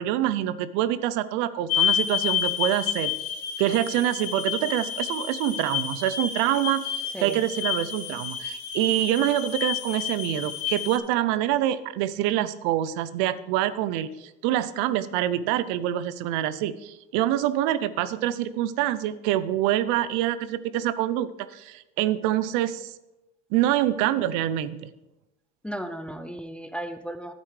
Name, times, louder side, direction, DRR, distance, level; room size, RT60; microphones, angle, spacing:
voice 1, 0.0-3.1 3.6-6.8 7.2-14.1 14.4-22.9 23.5-24.9, right 12 dB, 75° right, 15 dB, 0.6 m, -26 dB
sound 1, 1.7-11.0, left 10 dB, 60° left, 1.2 m, -30 dB
voice 2, 25.6-27.3, right 1 dB, 5° left, 9 dB, 0.4 m, -35 dB
10.5 x 8.3 x 3.3 m, 0.95 s
cardioid pair, 120°, 30 cm